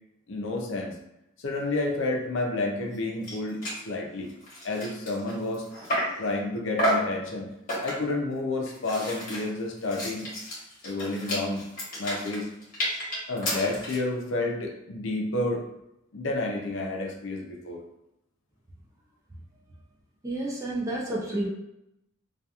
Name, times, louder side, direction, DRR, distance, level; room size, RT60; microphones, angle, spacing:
voice 1, 0.3-0.9 1.4-4.3 4.6-5.6 6.2-7.5 7.8-10.3 10.8-11.6 11.9-12.5 13.3-15.6 16.1-17.8, left 2 dB, 60° left, 0 dB, 0.5 m, -30 dB
sound 1, 2.9-3.0 3.2-3.4 3.6-3.8 4.3-6.2 6.8-7.1 7.7-8.2 8.6-14.1, equal, 40° left, 1.1 m, -31 dB
voice 2, 20.2-21.5, right 1 dB, 15° right, -3 dB, 0.3 m, -30 dB
2.8 x 2.3 x 2.3 m, 0.84 s
head